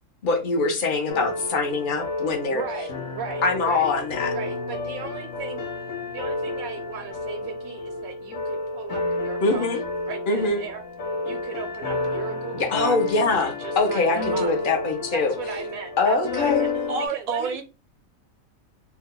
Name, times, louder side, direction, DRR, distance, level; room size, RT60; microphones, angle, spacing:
voice 1, 0.2-2.6 3.4-4.3 9.4-9.8 10.3-10.6 12.5-15.3 16.0-16.7, left 3 dB, 45° left, 0.8 m, -23 dB
sound 1, 1.1-17.1, left 3 dB, 70° left, 1.0 m, -30 dB
voice 2, 2.5-3.9 4.3-5.6 6.1-10.8 11.2-13.0 13.4-14.5 15.1-17.6, right 8 dB, 85° right, 1.0 m, -37 dB
voice 3, 16.9-17.6, right 4 dB, 40° right, 0.5 m, -27 dB
2.7 x 2.2 x 3.6 m
omnidirectional pair, 1.4 m